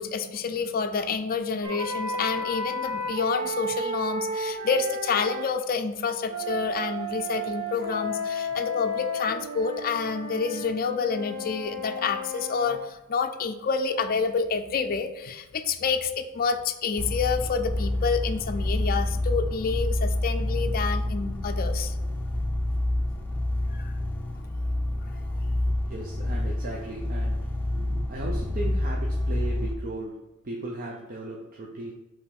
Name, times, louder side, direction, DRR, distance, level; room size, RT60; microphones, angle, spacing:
voice 1, 0.0-21.9 23.7-23.9, left 5 dB, 40° left, 6 dB, 0.5 m, -28 dB
sound 1, 1.6-5.5 6.3-12.8, equal, 80° right, 1.6 m, -33 dB
sound 2, 17.0-29.7, left 1 dB, 10° left, 0.8 m, -28 dB
voice 2, 25.9-31.9, right 2 dB, 40° right, -1 dB, 0.7 m, -37 dB
5.5 x 3.6 x 5.2 m, 1.1 s
head